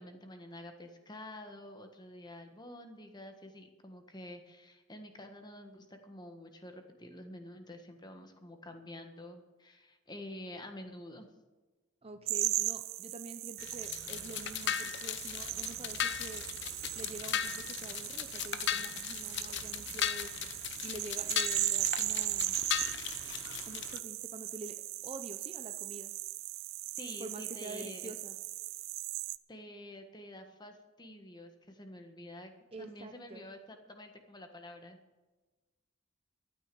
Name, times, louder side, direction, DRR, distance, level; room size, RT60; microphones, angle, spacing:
voice 1, 0.0-11.3 21.3-21.4 27.0-28.1 29.5-32.5 32.8-35.0, left 1 dB, 20° left, 5 dB, 1.5 m, -48 dB
voice 2, 12.0-16.4 16.9-20.5 20.8-22.6 23.6-24.8 25.0-26.1 27.2-28.4 32.7-33.4, right 2 dB, 30° right, 7 dB, 0.7 m, -47 dB
sound 1, 12.3-29.4, right 17 dB, 75° right, 0.5 m, -38 dB
sound 2, 13.6-24.0, left 9 dB, 55° left, 0.8 m, -37 dB
13.5 x 9.3 x 7.0 m, 1.2 s
head